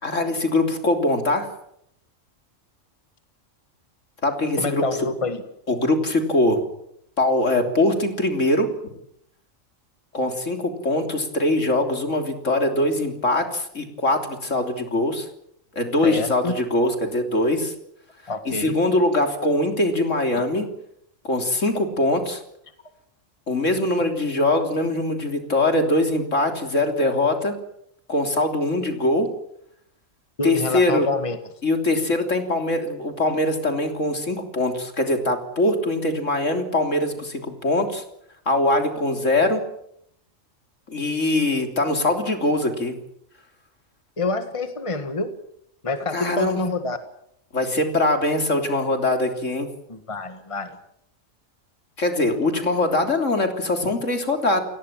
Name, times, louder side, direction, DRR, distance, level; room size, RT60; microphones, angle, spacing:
voice 1, 0.0-1.5 4.2-4.8 5.7-6.7 7.2-8.7 10.1-15.3 15.7-17.7 18.5-20.7 21.2-22.4 23.5-27.5 28.1-29.3 30.4-31.1 31.6-38.0 38.5-39.6 40.9-42.9 46.1-46.6 47.5-49.7 52.0-54.6, left 2 dB, 65° left, 5 dB, 3.7 m, -22 dB
voice 2, 4.6-5.4 16.0-16.6 18.3-18.8 30.4-31.4 44.2-45.3 45.8-47.0 49.9-50.8, left 3 dB, 25° left, 8 dB, 1.8 m, -27 dB
29.5 x 18.0 x 7.6 m, 0.75 s
omnidirectional pair, 1.4 m